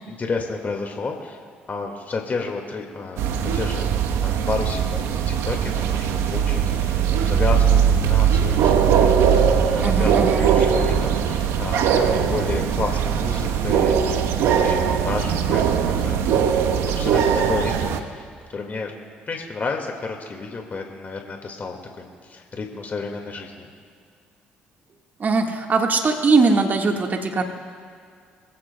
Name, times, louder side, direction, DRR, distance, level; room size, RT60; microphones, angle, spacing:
voice 1, 0.1-1.4 1.7-3.9 4.2-9.3 9.7-16.2 16.9-18.9 19.3-23.7, left 4 dB, 40° left, 2 dB, 1.9 m, -31 dB
sound 1, 3.2-18.0, right 7 dB, 70° right, 1.0 m, -20 dB
voice 2, 9.8-10.4 25.2-27.4, right 4 dB, 40° right, 3 dB, 1.6 m, -20 dB
25.5 x 15.5 x 2.2 m, 2.2 s
hypercardioid pair, 55°, 5 cm